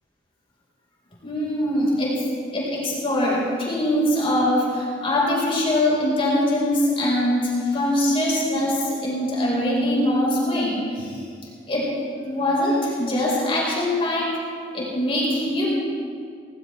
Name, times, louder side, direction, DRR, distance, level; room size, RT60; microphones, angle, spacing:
voice 1, 1.2-2.2 2.5-11.2 11.7-11.9 12.2-14.4 14.7-15.7, left 1 dB, 35° left, -5 dB, 4.6 m, -22 dB
19.0 x 18.0 x 3.4 m, 2.2 s
head